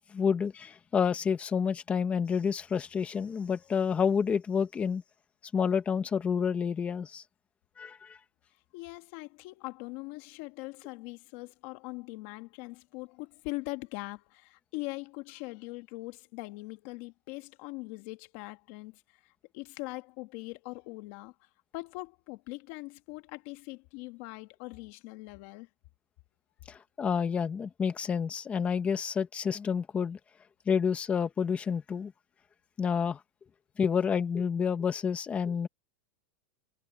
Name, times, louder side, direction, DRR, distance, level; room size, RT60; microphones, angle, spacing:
voice 1, 0.1-5.0 5.5-7.2 7.8-8.2 26.7-30.2 30.7-32.1 32.8-33.2 33.8-35.7, left 6 dB, 15° left, 1.5 m, -29 dB
voice 2, 8.7-21.3 21.7-25.7, left 23 dB, 45° left, 1.9 m, -42 dB
supercardioid pair, 170°, 9 cm